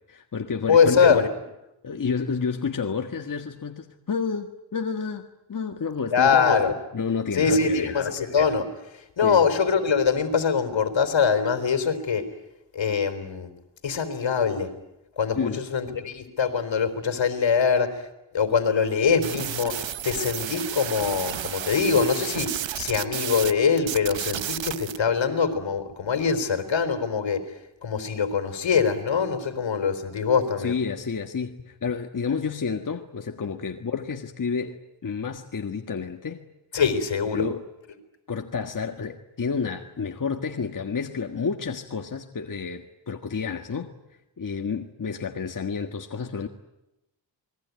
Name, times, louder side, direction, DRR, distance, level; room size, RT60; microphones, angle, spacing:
voice 1, 0.1-1.2 1.8-6.3 6.9-7.9 9.2-9.4 15.3-15.6 30.6-36.4 37.3-37.6 38.3-43.9 44.4-46.5, left 5 dB, 45° left, 4 dB, 1.6 m, -30 dB
voice 2, 0.7-1.3 6.1-6.7 7.4-8.7 9.2-12.2 12.7-13.5 13.8-14.7 15.2-17.9 18.3-19.7 20.0-22.5 22.8-27.4 27.8-30.8 36.7-37.4, left 6 dB, 70° left, 8 dB, 3.9 m, -23 dB
sound 1, 19.2-23.5 23.8-25.0, right 10 dB, 70° right, 1.0 m, -32 dB
29.0 x 21.0 x 9.4 m, 0.94 s
cardioid pair, 75°, 46 cm